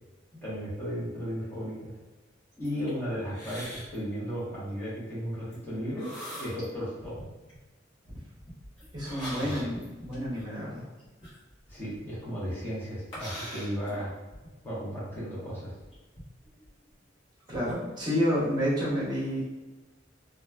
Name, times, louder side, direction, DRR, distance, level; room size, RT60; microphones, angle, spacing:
voice 1, 0.4-1.9 2.6-6.1 6.4-7.3 9.4-9.7 11.7-14.1 14.6-15.7, equal, 10° left, -10 dB, 1.1 m, -35 dB
sound 1, 2.5-2.9 3.3-4.0 4.3-4.6 5.5-5.6 5.9-6.7 7.0-7.6 8.4-12.2 13.1-14.5 15.1-15.2 15.8-17.0 17.4-17.7, equal, 30° left, 1.2 m, -42 dB
voice 2, 8.9-10.8 17.5-19.4, equal, 25° right, -7 dB, 1.2 m, -29 dB
2.9 x 2.4 x 2.2 m, 1.2 s
head